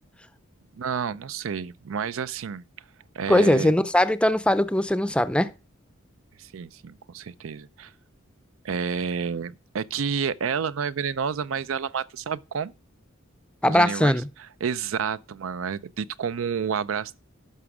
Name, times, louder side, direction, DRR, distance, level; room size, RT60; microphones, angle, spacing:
voice 1, 0.7-2.6 3.1-3.7 6.4-7.9 8.6-12.7 13.7-17.1, right 6 dB, 80° right, 0.5 m, -30 dB
voice 2, 3.3-5.5 13.6-14.3, left 1 dB, 5° left, 0.5 m, -20 dB
11.0 x 6.0 x 4.8 m
head